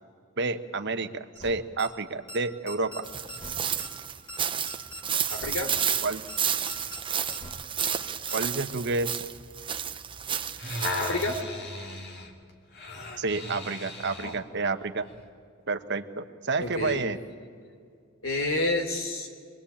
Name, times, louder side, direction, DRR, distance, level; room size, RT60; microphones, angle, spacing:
voice 1, 0.4-3.1 6.0-6.3 8.3-9.2 13.2-15.1 15.7-17.2, right 3 dB, 55° right, 9 dB, 1.1 m, -30 dB
sound 1, 1.4-1.5 1.8-1.9 2.3-2.4 2.7-3.0 3.3-3.5 3.8-3.9 4.3-4.4 4.7-5.0 5.3-5.5 5.8-5.9 6.3-6.4 6.7-7.0 7.3-7.5 7.8-7.9 8.3-8.4, equal, 25° left, 3.0 m, -41 dB
sound 2, 3.0-11.4, right 8 dB, 25° right, 0.9 m, -31 dB
voice 2, 5.3-5.7 10.9-11.4 16.6-17.0 18.2-19.3, left 2 dB, 80° left, 5 dB, 3.3 m, -29 dB
sound 3, 10.6-14.4 15.1-15.2, left 2 dB, 55° left, 2.7 m, -36 dB
25.5 x 20.5 x 8.7 m, 2.2 s
head